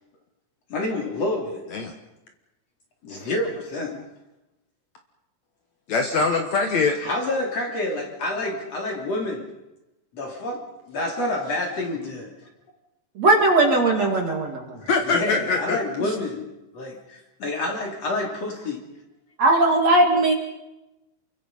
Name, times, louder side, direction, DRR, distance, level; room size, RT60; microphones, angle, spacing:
voice 1, 0.7-1.7 3.0-4.0 7.0-9.5 10.1-12.4 15.1-18.8, left 2 dB, 35° left, 1 dB, 3.8 m, -28 dB
voice 2, 5.9-7.0 14.9-15.8, left 4 dB, 85° left, 4 dB, 1.5 m, -22 dB
voice 3, 13.2-14.8 16.0-16.1 19.4-20.3, right 2 dB, 40° right, 1 dB, 3.0 m, -19 dB
28.5 x 23.5 x 5.6 m, 0.98 s
omnidirectional pair, 5.5 m